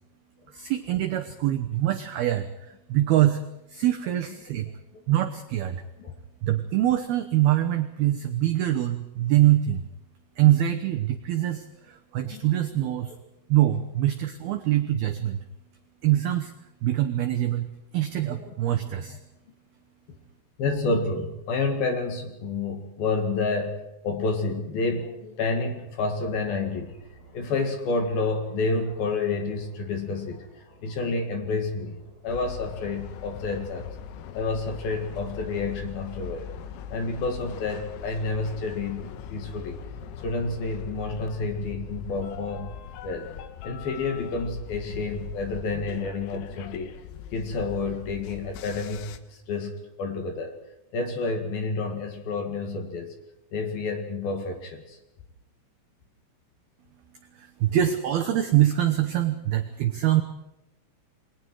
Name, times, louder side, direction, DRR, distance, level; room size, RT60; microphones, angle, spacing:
voice 1, 0.5-3.4 3.7-4.7 5.1-5.8 6.4-9.8 10.4-13.1 13.5-15.4 16.0-16.5 16.8-19.2 57.4-60.2, right 13 dB, 80° right, 5 dB, 2.2 m, -24 dB
voice 2, 12.3-12.8 18.3-18.5 19.1-19.2 20.6-27.0 27.3-32.0 32.2-33.9 34.3-36.5 36.9-39.8 40.2-42.7 43.0-43.3 43.6-46.9 47.3-50.6 50.9-53.2 53.5-55.0, left 3 dB, 55° left, 5 dB, 3.3 m, -29 dB
sound 1, 26.1-42.3, right 3 dB, 25° right, 7.5 m, -54 dB
sound 2, 32.3-49.2, left 9 dB, 85° left, 4.0 m, -40 dB
29.0 x 22.5 x 4.8 m, 0.92 s
omnidirectional pair, 5.9 m